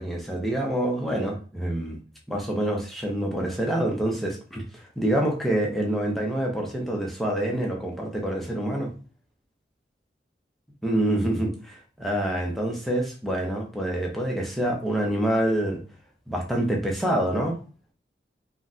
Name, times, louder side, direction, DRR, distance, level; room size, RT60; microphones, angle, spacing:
voice 1, 0.0-2.0 2.3-8.9 10.8-15.8 16.3-17.6, right 1 dB, ahead, -1 dB, 0.5 m, -26 dB
3.9 x 2.1 x 2.4 m, 0.39 s
head